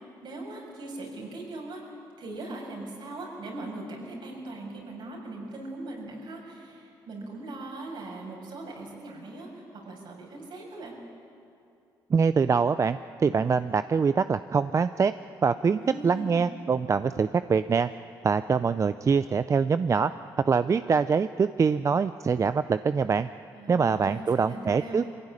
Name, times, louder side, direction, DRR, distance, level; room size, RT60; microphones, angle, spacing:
voice 1, 0.2-1.8 2.2-10.9 15.7-16.5 23.5-25.1, right 2 dB, 65° right, -1 dB, 6.6 m, -40 dB
voice 2, 12.1-15.1 15.4-17.9 18.2-20.1 20.4-23.3 23.7-25.0, right 5 dB, 40° right, 13 dB, 0.5 m, -24 dB
22.5 x 16.0 x 9.9 m, 2.6 s
supercardioid pair, 65°, 9 cm